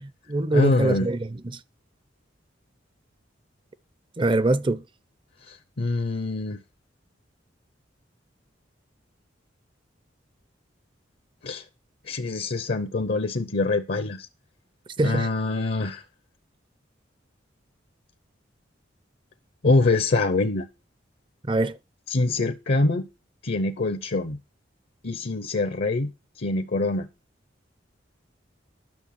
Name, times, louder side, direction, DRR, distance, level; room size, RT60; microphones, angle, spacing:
voice 1, 0.0-1.6 4.2-4.8 15.0-15.3 21.5-21.8, right 2 dB, 25° right, 0.6 m, -23 dB
voice 2, 0.5-1.1 5.5-6.6 11.4-11.6 12.0-14.3 15.0-16.0 19.6-20.7 22.1-23.0 23.4-24.4 25.0-27.1, left 2 dB, 60° left, 0.8 m, -24 dB
10.5 x 6.6 x 5.8 m
head